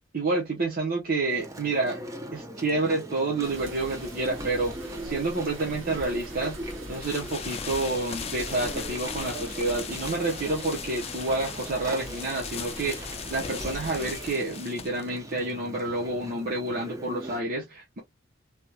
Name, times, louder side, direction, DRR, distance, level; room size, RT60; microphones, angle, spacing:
voice 1, 0.1-2.0 2.3-4.8 5.0-6.6 6.9-18.0, right 2 dB, 50° right, 0.9 m, -29 dB
Chewing mastication, 1.3-17.4, right 1 dB, 15° right, 0.7 m, -41 dB
sound 1, 3.4-14.3, right 1 dB, 80° right, 1.7 m, -43 dB
sound 2, 7.0-16.6, left 7 dB, 30° left, 0.5 m, -39 dB
3.5 x 2.4 x 2.8 m
head